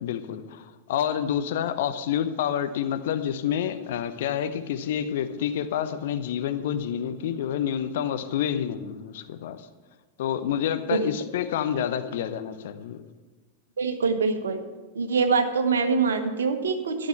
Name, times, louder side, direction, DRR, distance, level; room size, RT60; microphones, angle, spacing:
voice 1, 0.0-9.7 10.2-13.0, left 9 dB, 55° left, 9 dB, 0.8 m, -28 dB
voice 2, 13.8-14.6 14.9-17.1, right 5 dB, 65° right, 8 dB, 1.2 m, -24 dB
13.0 x 6.5 x 7.4 m, 1.2 s
figure-of-eight pair, 90°, 0 cm